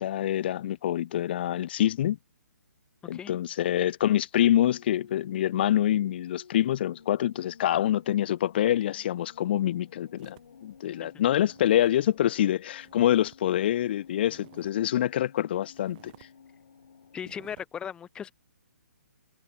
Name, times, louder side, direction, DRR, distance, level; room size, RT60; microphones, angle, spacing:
voice 1, 0.0-2.2 3.1-16.1, left 12 dB, 40° left, 0.7 m, -26 dB
voice 2, 3.0-3.4 10.8-11.1 17.1-18.3, left 8 dB, 10° left, 2.8 m, -38 dB
sound 1, 4.7-17.3, left 6 dB, 65° left, 6.6 m, -53 dB
sound 2, 10.2-13.4 13.7-14.9 15.3-15.4 15.7-16.3 16.7-16.9 17.2-17.6, right 20 dB, 30° right, 6.1 m, -56 dB
hypercardioid pair, 160°, 9 cm